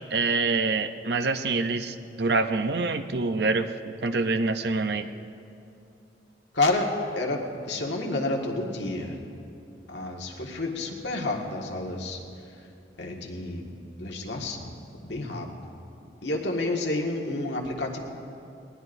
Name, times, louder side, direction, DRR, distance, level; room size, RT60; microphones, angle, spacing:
voice 1, 0.1-5.1, right 3 dB, 65° right, 9 dB, 0.6 m, -26 dB
voice 2, 6.5-9.2 9.9-12.2 13.0-13.7 14.0-14.8 15.0-15.7 16.2-18.0, left 2 dB, 80° left, 0 dB, 1.8 m, -29 dB
21.0 x 19.0 x 2.6 m, 2.7 s
head